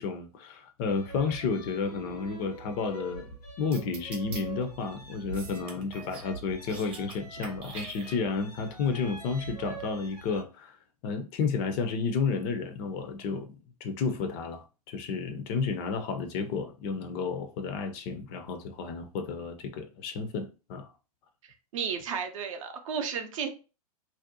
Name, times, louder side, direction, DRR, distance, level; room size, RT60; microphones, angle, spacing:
voice 1, 0.0-3.2 3.6-10.8 11.0-13.5 13.8-20.9, left 5 dB, 35° left, 0.4 m, -31 dB
sound 1, 0.9-10.4, right 4 dB, 90° left, 1.2 m, -44 dB
sound 2, 3.7-4.4 5.3-6.3 6.6-7.2 7.4-8.5, right 4 dB, 25° right, 0.7 m, -43 dB
voice 2, 21.7-23.5, right 6 dB, 55° right, 0.5 m, -33 dB
2.6 x 2.1 x 2.6 m
figure-of-eight pair, 100°, 20 cm